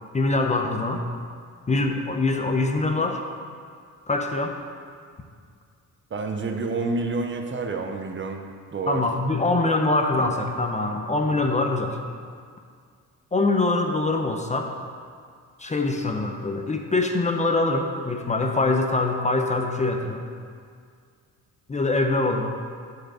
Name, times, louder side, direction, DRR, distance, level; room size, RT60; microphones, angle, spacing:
voice 1, 0.1-1.0 1.7-3.2 4.1-4.6 8.9-12.0 13.3-14.7 15.6-20.3 21.7-22.6, left 2 dB, 20° left, 3 dB, 0.6 m, -24 dB
voice 2, 6.1-8.4 8.7-9.0, right 3 dB, 35° right, 4 dB, 0.7 m, -28 dB
7.5 x 4.7 x 6.2 m, 2.1 s
cardioid pair, 100°, 32 cm